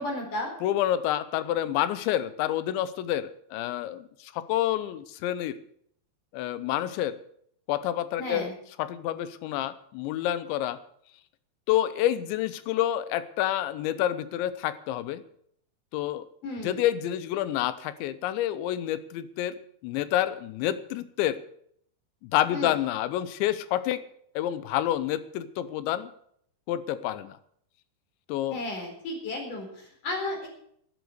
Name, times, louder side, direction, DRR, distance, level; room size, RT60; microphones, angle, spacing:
voice 1, 0.0-0.5 8.2-8.5 16.4-16.8 22.5-22.7 28.5-30.5, left 2 dB, 45° left, 1 dB, 5.5 m, -33 dB
voice 2, 0.6-5.6 6.3-7.2 7.7-8.5 8.8-10.8 11.7-15.2 15.9-16.3 16.6-21.4 22.2-24.0 24.4-26.1 26.7-27.4 28.3-28.6, left 12 dB, 80° left, 15 dB, 3.0 m, -28 dB
12.0 x 11.5 x 7.8 m, 0.66 s
omnidirectional pair, 5.4 m